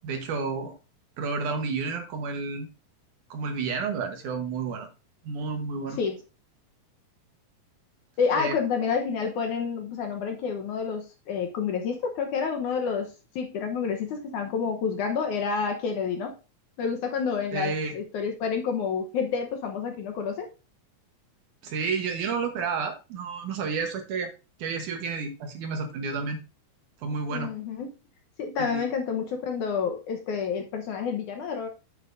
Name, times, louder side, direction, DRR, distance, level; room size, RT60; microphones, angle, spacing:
voice 1, 0.0-0.7 1.2-2.7 3.3-4.9 5.2-6.0 8.3-8.5 17.5-17.9 21.6-24.3 24.6-26.4 27.0-27.5 28.6-28.8, right 4 dB, 65° right, 2.5 m, -30 dB
voice 2, 8.2-16.4 16.8-20.5 27.3-27.9 28.4-31.7, left 6 dB, 70° left, 2.1 m, -29 dB
8.9 x 8.5 x 2.6 m
omnidirectional pair, 4.3 m